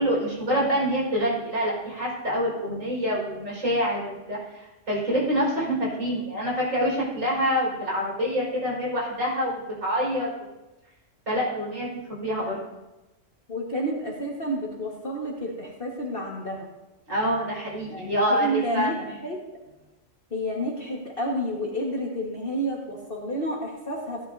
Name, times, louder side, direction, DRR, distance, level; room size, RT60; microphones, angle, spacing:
voice 1, 0.0-10.3 11.3-12.6 17.1-19.0, equal, 75° right, -4 dB, 5.5 m, -26 dB
voice 2, 5.5-6.0 12.4-12.5 13.5-16.7 17.9-19.0 19.2-19.4 20.3-24.3, equal, 45° left, -2 dB, 1.8 m, -30 dB
16.5 x 11.0 x 2.7 m, 1.0 s
omnidirectional pair, 1.3 m